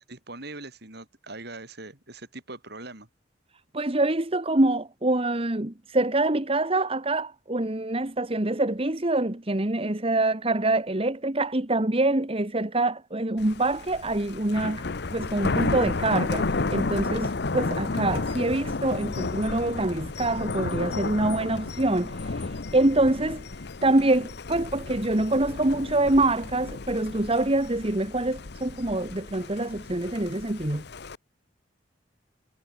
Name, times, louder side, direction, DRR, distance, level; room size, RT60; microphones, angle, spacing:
voice 1, 0.1-3.1, right 2 dB, 60° right, 6.2 m, -41 dB
voice 2, 3.7-14.8 15.1-23.4 23.8-30.8, right 2 dB, 30° right, 1.5 m, -25 dB
Thunder, 13.4-31.2, left 3 dB, 60° left, 0.9 m, -32 dB
head